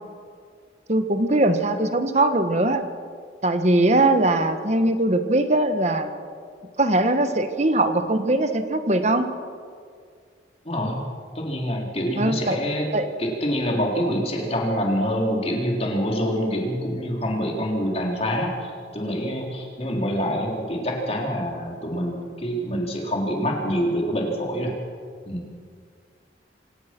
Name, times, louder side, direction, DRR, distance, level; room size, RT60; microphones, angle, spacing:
voice 1, 0.9-2.8 3.4-6.1 6.8-9.3 12.1-12.6 12.9-13.1, right 2 dB, 40° right, 8 dB, 1.5 m, -21 dB
voice 2, 11.3-12.9 13.2-24.7 25.3-25.4, equal, 35° left, 0 dB, 3.8 m, -26 dB
26.0 x 17.0 x 6.1 m, 2.1 s
head